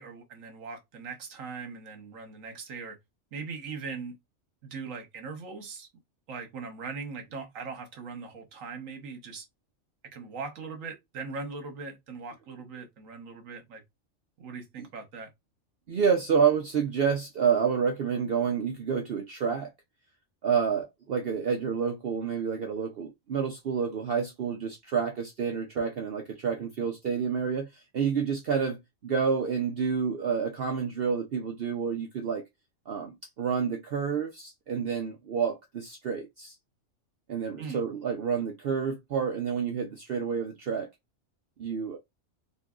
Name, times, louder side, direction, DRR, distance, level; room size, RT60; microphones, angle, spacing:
voice 1, 0.0-3.0 3.3-4.2 4.6-5.9 6.3-9.4 10.1-13.8 14.4-15.3 37.6-37.8, right 4 dB, 75° right, 1.3 m, -40 dB
voice 2, 15.9-19.7 20.4-32.4 32.9-36.5 37.3-40.9 41.6-42.0, right 6 dB, 55° right, 0.7 m, -29 dB
4.0 x 2.6 x 2.3 m
omnidirectional pair, 1.4 m